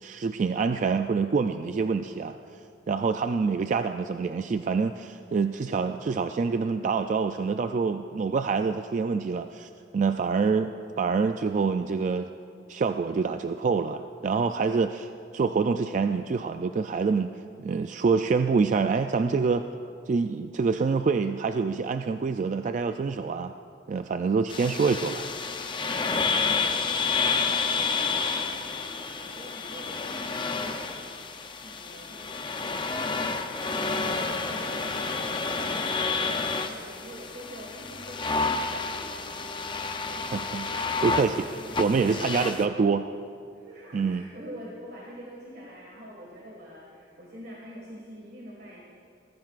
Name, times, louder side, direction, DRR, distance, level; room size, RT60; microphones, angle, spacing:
voice 1, 0.0-2.4 2.9-12.3 12.7-17.3 17.6-19.6 20.1-23.5 23.9-25.3 40.3-40.7 41.0-41.3 41.8-43.1 43.9-44.3, right 5 dB, 40° right, 8 dB, 0.3 m, -26 dB
sound 1, 24.5-42.7, left 4 dB, 25° left, 0.6 m, -30 dB
voice 2, 25.9-39.4 39.9-40.6 40.9-42.8 43.5-48.8, equal, 60° right, -4 dB, 1.9 m, -46 dB
20.5 x 14.5 x 2.5 m, 2.5 s
head